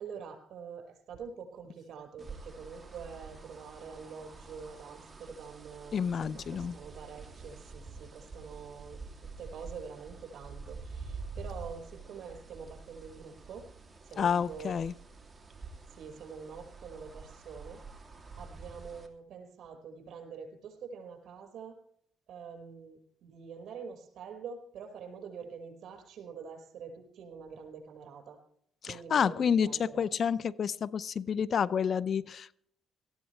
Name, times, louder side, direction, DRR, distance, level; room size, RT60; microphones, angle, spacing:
voice 1, 0.0-9.1 9.4-13.7 14.0-14.7 15.9-17.8 18.3-21.8 22.3-28.4 28.8-30.1, right 6 dB, 70° right, 3 dB, 5.0 m, -46 dB
sound 1, 2.2-19.1, right 4 dB, 20° right, 2.7 m, -47 dB
voice 2, 5.9-6.7 14.2-14.9 29.1-32.6, left 7 dB, 55° left, 19 dB, 0.6 m, -29 dB
18.5 x 15.0 x 3.3 m, 0.69 s
cardioid pair, 90°, 0 cm